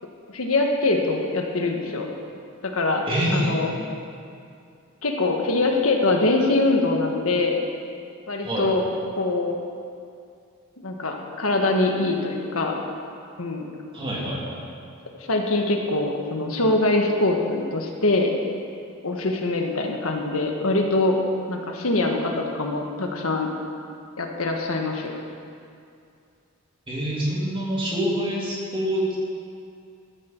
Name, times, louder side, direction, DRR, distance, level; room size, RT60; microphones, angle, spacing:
voice 1, 0.3-2.1 2.6-3.0 3.3-3.7 5.0-7.6 8.3-8.8 9.2-9.5 10.8-12.7 13.4-13.7 15.2-18.3 19.0-21.2 21.5-23.5 24.2-25.1, left 2 dB, 85° left, 2 dB, 1.6 m, -23 dB
voice 2, 3.1-3.6 8.4-8.7 13.9-14.6 26.9-29.2, equal, 25° right, -5 dB, 3.2 m, -26 dB
14.0 x 13.5 x 4.6 m, 2.4 s
head